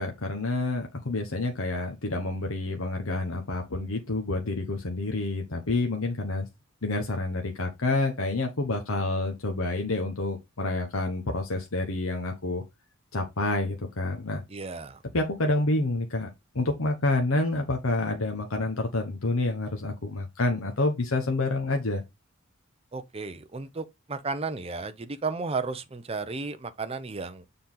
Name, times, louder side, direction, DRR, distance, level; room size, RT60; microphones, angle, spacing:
voice 1, 0.0-6.5 6.8-12.6 13.1-14.4 15.1-16.3 16.5-22.0, left 2 dB, 85° left, 1.1 m, -28 dB
voice 2, 14.5-15.0 22.9-27.5, right 4 dB, 30° right, 0.7 m, -33 dB
6.9 x 3.9 x 3.9 m
head